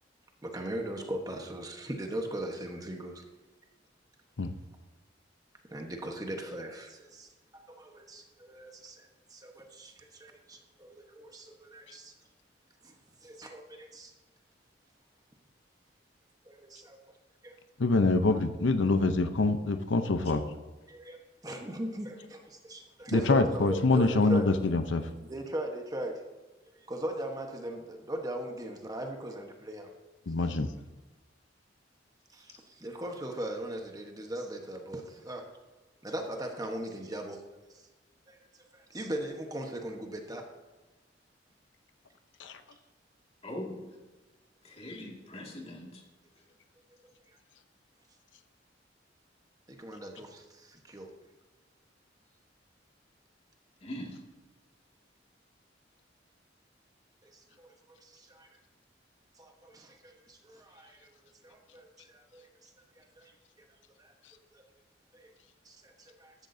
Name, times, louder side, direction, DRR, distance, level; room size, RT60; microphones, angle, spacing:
voice 1, 0.4-3.2 5.7-12.1 12.8-12.9 13.2-14.1 16.4-17.0 17.4-17.5 20.9-21.2 21.4-24.5 25.2-26.2 26.6-29.9 32.3-35.5 36.0-37.4 37.7-37.8 38.3-38.4 38.7-40.4 49.7-51.1 57.2-58.5 59.4-62.7 63.0-63.3 63.6-63.7 64.0-64.1 64.5-64.6 65.1-65.3 65.6-66.3, right 1 dB, 20° right, 3 dB, 1.2 m, -39 dB
voice 2, 17.8-20.4 23.1-25.0 30.3-30.7 42.4-42.6, left 3 dB, 90° left, 9 dB, 0.7 m, -25 dB
voice 3, 43.4-43.9 44.6-46.0 53.8-54.2, left 1 dB, 35° left, 0 dB, 2.1 m, -41 dB
14.5 x 12.5 x 2.7 m, 1.2 s
head